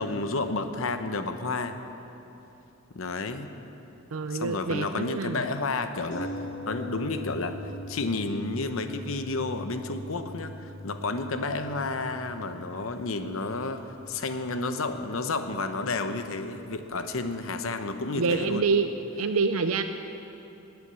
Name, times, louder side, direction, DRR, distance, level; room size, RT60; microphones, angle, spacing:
voice 1, 0.0-1.8 2.9-3.5 4.3-18.7, left 3 dB, 70° left, 8 dB, 0.8 m, -31 dB
voice 2, 4.1-5.4 18.2-18.9 19.2-19.8, right 4 dB, 85° right, 8 dB, 0.6 m, -26 dB
sound 1, 6.1-16.0 16.3-16.4, equal, 40° left, 3.4 m, -42 dB
20.0 x 8.1 x 6.9 m, 3.0 s
head